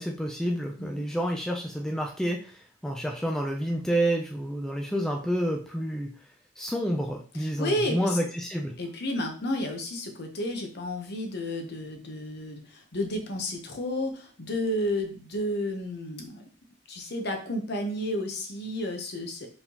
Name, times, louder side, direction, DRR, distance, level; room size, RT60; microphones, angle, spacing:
voice 1, 0.0-6.1 6.6-8.7, equal, 5° left, 1 dB, 0.4 m, -29 dB
voice 2, 7.4-8.2 8.8-16.4 16.9-19.5, left 1 dB, 55° left, 3 dB, 0.9 m, -31 dB
4.4 x 3.5 x 2.9 m, 0.40 s
head